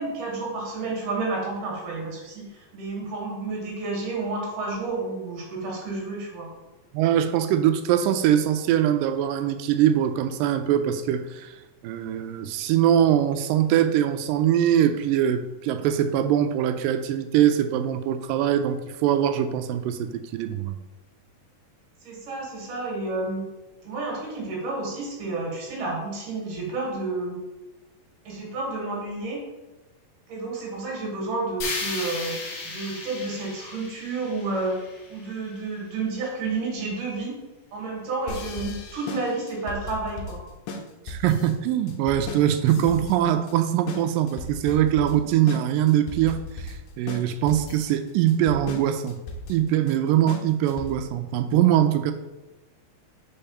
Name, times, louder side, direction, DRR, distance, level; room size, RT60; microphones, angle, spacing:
voice 1, 0.0-6.5 22.0-23.4 23.8-27.4 28.2-29.4 30.3-32.3 32.6-34.8 35.1-37.4 37.7-40.4, right 3 dB, 75° right, -1 dB, 3.3 m, -30 dB
voice 2, 6.9-11.5 11.8-20.8 41.1-49.2 49.5-52.1, right 10 dB, 90° right, 9 dB, 2.3 m, -22 dB
sound 1, 31.6-35.7, left 3 dB, 60° left, 1.5 m, -35 dB
sound 2, 38.3-51.2, left 2 dB, 80° left, 2.3 m, -37 dB
5.4 x 4.7 x 5.6 m, 1.1 s
omnidirectional pair, 3.8 m